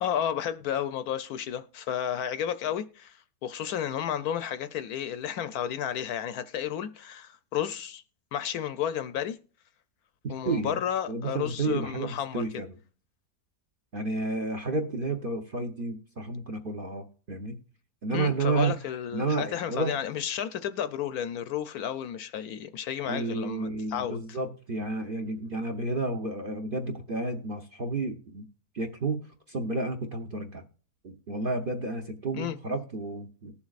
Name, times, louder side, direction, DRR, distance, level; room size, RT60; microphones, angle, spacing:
voice 1, 0.0-8.0 8.3-9.4 10.3-12.6 18.1-24.4 32.3-32.6, left 9 dB, 70° left, 1.0 m, -32 dB
voice 2, 10.2-10.8 11.1-12.8 13.9-17.6 18.0-18.7 19.1-20.0 23.0-28.4 28.7-29.2 29.5-30.6 31.0-33.5, right 3 dB, 45° right, 0.8 m, -31 dB
19.0 x 7.2 x 2.4 m
omnidirectional pair, 1.8 m